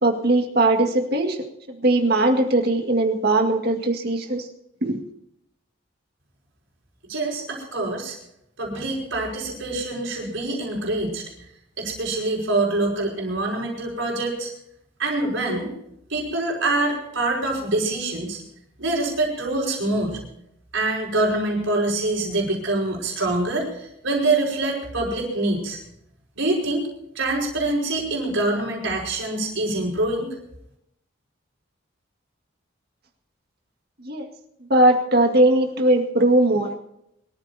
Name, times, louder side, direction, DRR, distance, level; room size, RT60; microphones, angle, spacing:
voice 1, 0.0-1.4 1.7-4.5 4.8-5.0 34.0-34.3 34.7-36.7, right 2 dB, 50° right, 4 dB, 2.1 m, -19 dB
voice 2, 7.1-8.2 8.6-11.2 11.8-14.5 15.0-15.7 16.1-18.4 18.8-20.2 20.7-25.8 26.4-26.9 27.1-30.3, right 2 dB, 75° right, -2 dB, 5.1 m, -25 dB
23.5 x 14.0 x 2.8 m, 0.78 s
head